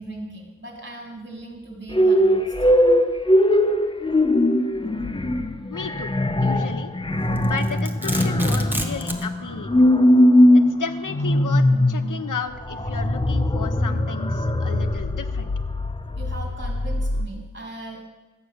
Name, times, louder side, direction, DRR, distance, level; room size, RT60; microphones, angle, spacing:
voice 1, 0.0-2.5 16.2-18.0, right 2 dB, 35° right, 0 dB, 3.6 m, -38 dB
sound 1, 1.9-17.3, left 1 dB, 15° left, 0.8 m, -20 dB
voice 2, 5.7-6.1 6.4-6.9 7.4-9.8 10.5-15.5, left 6 dB, 65° left, 8 dB, 1.1 m, -33 dB
Domestic sounds home sounds, 7.4-9.3, right 1 dB, 5° right, 1.3 m, -30 dB
13.0 x 8.9 x 6.6 m, 1.2 s
wide cardioid pair, 70°, 34 cm